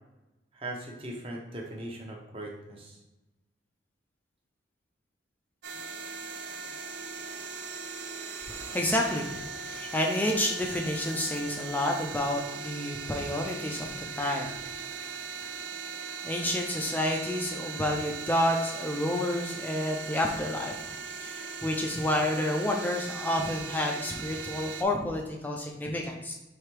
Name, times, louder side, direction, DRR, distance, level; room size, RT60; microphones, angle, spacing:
voice 1, 0.5-3.0, right 1 dB, 30° right, -1 dB, 0.8 m, -39 dB
sound 1, 5.6-24.8, right 5 dB, 60° right, 0.5 m, -39 dB
voice 2, 8.5-14.5 16.2-20.7 21.2-26.3, left 1 dB, 10° left, 0 dB, 0.4 m, -30 dB
4.8 x 3.4 x 3.2 m, 1.0 s
head